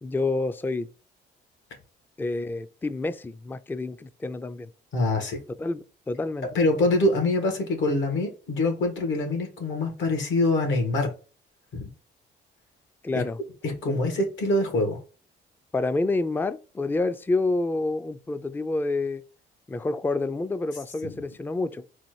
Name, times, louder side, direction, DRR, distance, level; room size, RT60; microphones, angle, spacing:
voice 1, 0.0-0.9 2.2-4.7 5.6-6.5 13.0-13.4 13.9-14.0 15.7-19.2 19.7-21.8, left 2 dB, 10° left, 0.4 m, -28 dB
voice 2, 4.9-5.4 6.6-11.1 11.7-11.9 13.1-13.2 13.6-15.0 21.0-21.1, left 2 dB, 70° left, 1.7 m, -24 dB
4.3 x 2.5 x 4.5 m
cardioid pair, 90°, 20 cm